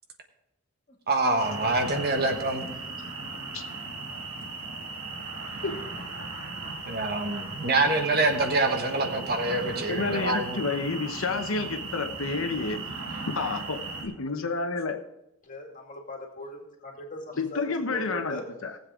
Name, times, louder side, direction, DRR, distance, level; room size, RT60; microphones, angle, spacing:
voice 1, 1.1-2.7 6.7-10.6, right 2 dB, 50° right, 5 dB, 1.3 m, -26 dB
sound 1, 1.4-14.0, right 3 dB, 75° right, 2.2 m, -37 dB
voice 2, 9.9-12.8 13.3-15.0 17.4-18.8, left 3 dB, 65° left, 6 dB, 0.9 m, -30 dB
voice 3, 15.4-18.4, left 1 dB, 35° left, 1 dB, 2.3 m, -39 dB
18.5 x 7.7 x 3.7 m, 0.85 s
head